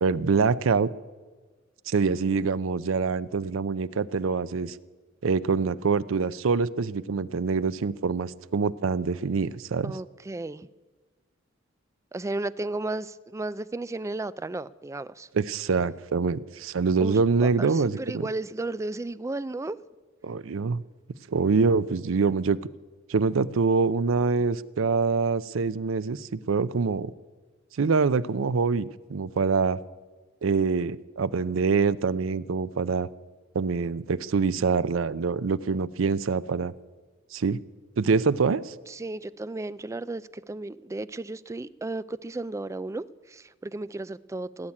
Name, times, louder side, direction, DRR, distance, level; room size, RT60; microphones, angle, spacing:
voice 1, 0.0-0.9 1.9-4.8 5.2-9.9 15.3-18.2 20.2-20.8 21.3-22.6 23.1-27.1 27.8-29.8 30.4-33.1 33.5-36.7 37.3-37.6 38.0-38.7, right 4 dB, 80° right, 17 dB, 0.5 m, -25 dB
voice 2, 9.8-10.7 12.1-15.3 17.0-19.8 38.9-44.7, right 2 dB, 15° right, 17 dB, 0.3 m, -34 dB
17.5 x 7.3 x 9.8 m, 1.4 s
head